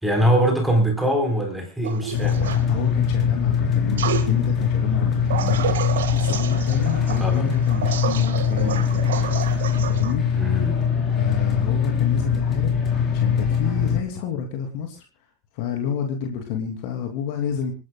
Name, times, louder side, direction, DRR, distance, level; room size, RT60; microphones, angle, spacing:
voice 1, 0.0-2.5 7.2-7.5 10.3-10.8, equal, 5° right, 3 dB, 4.2 m, -22 dB
sound 1, 1.8-2.6 4.0-4.3 5.3-10.1, right 9 dB, 60° right, 1.8 m, -30 dB
voice 2, 2.1-9.1 9.8-10.2 11.2-15.0 15.5-17.7, left 8 dB, 45° left, 3 dB, 2.8 m, -29 dB
sound 2, 2.1-14.0, left 7 dB, 25° left, 4.4 m, -22 dB
28.0 x 11.5 x 2.3 m, 0.29 s
figure-of-eight pair, 90°, 0 cm